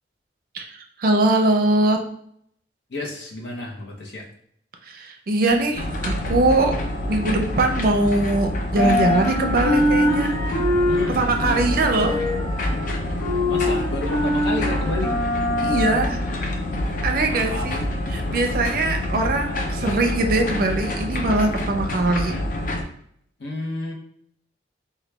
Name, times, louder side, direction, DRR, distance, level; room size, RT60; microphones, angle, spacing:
voice 1, 1.0-2.0 4.9-6.7 7.1-10.4 11.1-12.2 15.6-16.2 17.0-17.8 18.1-22.4, right 2 dB, 50° right, 4 dB, 0.4 m, -21 dB
voice 2, 2.9-4.2 10.7-11.7 13.5-15.2 16.7-17.7 23.4-23.9, left 2 dB, 75° left, -1 dB, 0.8 m, -31 dB
sound 1, 5.5-8.3 8.6-16.8, left 1 dB, 10° left, 1.0 m, -25 dB
sound 2, 5.7-22.8, left 1 dB, 45° left, 0.4 m, -27 dB
2.9 x 2.2 x 3.3 m, 0.67 s
head